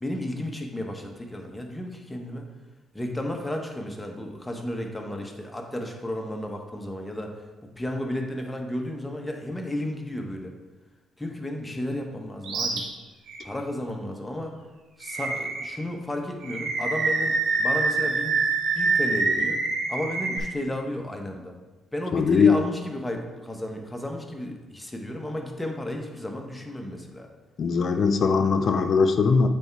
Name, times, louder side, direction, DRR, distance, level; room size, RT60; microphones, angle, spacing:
voice 1, 0.0-2.5 2.9-7.4 7.7-10.5 11.2-12.9 13.4-14.5 15.0-18.4 18.7-19.6 19.9-21.6 21.9-27.3, left 1 dB, 10° left, 2 dB, 1.1 m, -33 dB
Animal, 12.4-12.8 13.3-13.4 15.0-15.8 16.4-20.4, right 3 dB, 85° right, 1.6 m, -25 dB
voice 2, 22.1-22.6 27.6-29.5, left 5 dB, 55° left, 8 dB, 0.5 m, -20 dB
8.8 x 3.6 x 4.6 m, 1.2 s
cardioid pair, 90°, 0 cm